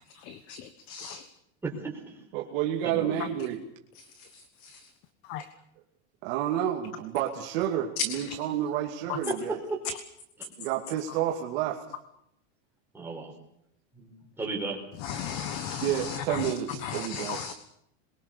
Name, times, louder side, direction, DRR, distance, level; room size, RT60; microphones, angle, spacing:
voice 1, 0.1-1.3 4.6-4.9 5.3-5.5 8.0-8.4 9.1-9.2 15.0-16.5 16.8-17.5, left 7 dB, 40° left, 12 dB, 1.3 m, -35 dB
voice 2, 1.6-2.2 2.8-3.2 9.3-9.6 10.4-10.5 12.9-13.3 13.9-14.8, right 3 dB, 5° right, -1 dB, 4.8 m, -35 dB
voice 3, 2.3-3.6 6.2-9.5 10.6-11.8 15.8-17.4, right 11 dB, 50° right, 1 dB, 2.6 m, -30 dB
27.0 x 22.5 x 6.9 m, 0.76 s
supercardioid pair, 175°, 36 cm